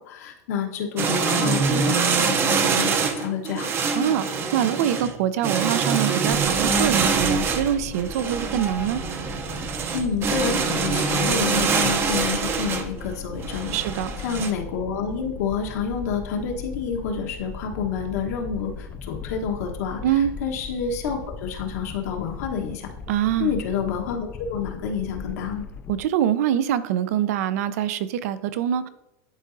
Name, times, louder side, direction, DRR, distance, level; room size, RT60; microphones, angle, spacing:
voice 1, 0.0-3.7 9.9-20.0 20.4-22.9 23.4-25.7, left 6 dB, 70° left, 2 dB, 1.2 m, -29 dB
sound 1, 1.0-14.5, right 5 dB, 25° right, 0.6 m, -24 dB
voice 2, 4.0-9.0 13.7-14.1 20.0-20.3 23.1-23.5 25.9-28.9, right 10 dB, 70° right, 14 dB, 0.5 m, -24 dB
sound 2, 6.3-26.0, left 5 dB, 20° left, 0.3 m, -38 dB
11.0 x 4.0 x 2.6 m, 0.86 s
supercardioid pair, 140°, 9 cm